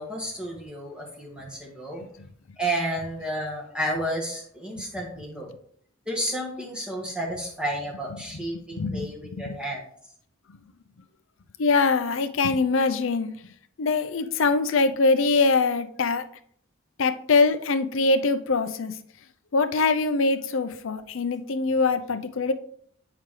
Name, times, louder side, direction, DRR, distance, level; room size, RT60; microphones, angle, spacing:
voice 1, 0.0-2.1 2.6-5.5 6.1-9.8, right 1 dB, 5° right, -2 dB, 1.6 m, -31 dB
voice 2, 8.7-9.6 11.6-13.3 13.8-16.2 17.0-18.9 19.5-22.5, left 3 dB, 70° left, 10 dB, 0.5 m, -23 dB
7.5 x 5.7 x 3.2 m, 0.62 s
head